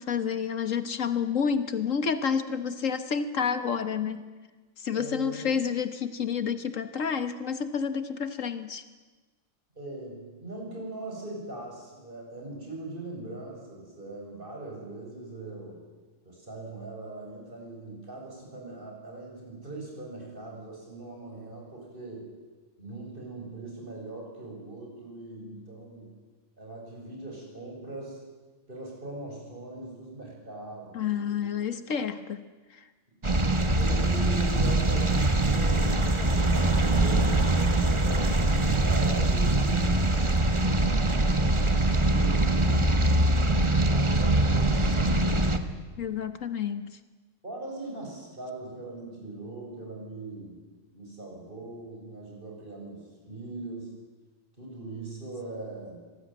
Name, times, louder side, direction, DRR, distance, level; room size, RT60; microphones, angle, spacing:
voice 1, 0.0-4.2 4.8-8.8 30.9-32.4 32.7-32.9 46.0-46.9, left 7 dB, 70° left, 11 dB, 1.6 m, -29 dB
voice 2, 4.9-5.6 9.7-15.8 16.2-22.3 22.8-26.1 26.6-28.2 28.7-31.5 33.4-36.0 36.3-40.2 40.6-43.0 43.7-45.7 47.4-50.6 50.9-54.0 54.6-56.0, right 2 dB, 40° right, -1 dB, 7.8 m, -40 dB
sound 1, 33.2-45.6, right 2 dB, 20° right, 1.4 m, -23 dB
25.5 x 19.0 x 9.3 m, 1.3 s
omnidirectional pair, 1.4 m